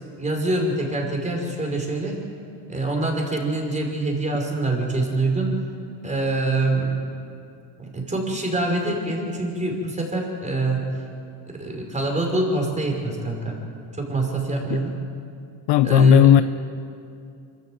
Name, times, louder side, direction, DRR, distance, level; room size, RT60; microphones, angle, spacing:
voice 1, 0.2-2.2 2.7-5.6 6.0-6.9 7.8-10.8 11.5-13.6 14.0-14.9 15.8-16.3, right 2 dB, 15° right, 1 dB, 5.1 m, -25 dB
voice 2, 15.7-16.4, left 12 dB, 55° left, 13 dB, 0.7 m, -15 dB
25.0 x 14.5 x 7.8 m, 2.5 s
supercardioid pair, 100°, 50 cm